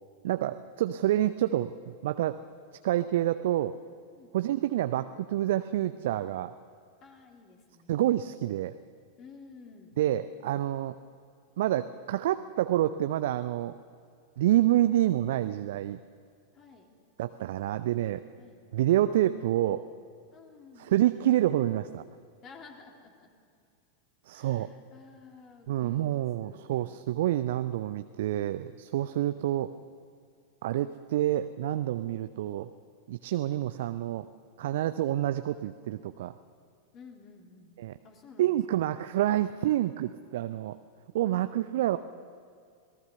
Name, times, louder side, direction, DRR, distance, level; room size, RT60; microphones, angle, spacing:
voice 1, 0.2-2.4 2.8-3.8 4.3-6.5 7.9-8.8 10.0-11.0 11.6-13.8 14.4-16.0 17.2-18.2 18.7-19.8 20.8-22.0 24.3-24.7 25.7-29.7 30.6-32.7 33.1-34.3 34.6-36.3 37.8-37.9 38.4-40.8 41.1-42.0, right 13 dB, 55° right, 11 dB, 0.6 m, -28 dB
voice 2, 4.2-4.6 7.0-8.0 9.2-10.0 16.5-16.9 18.4-18.6 20.3-21.1 22.4-23.3 24.3-27.0 36.9-37.7 38.0-39.0, left 4 dB, 30° left, 2 dB, 3.2 m, -53 dB
26.5 x 18.5 x 6.8 m, 2.3 s
figure-of-eight pair, 90°, 0 cm